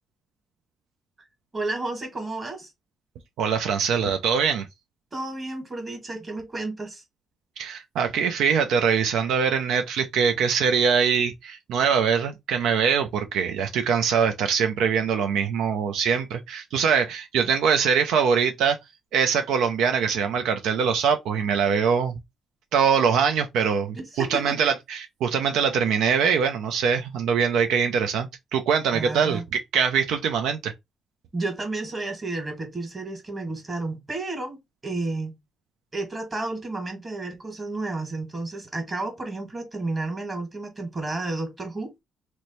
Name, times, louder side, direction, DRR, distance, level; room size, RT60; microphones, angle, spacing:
voice 1, 1.5-2.7 5.1-7.0 24.0-24.6 28.9-29.4 31.3-35.4 35.9-41.9, right 2 dB, 25° right, 1.6 m, -31 dB
voice 2, 3.4-4.7 7.6-18.8 19.1-22.2 22.7-29.4 29.7-30.7, right 6 dB, 85° right, 0.4 m, -23 dB
3.0 x 2.1 x 4.0 m
cardioid pair, 90°, 0 cm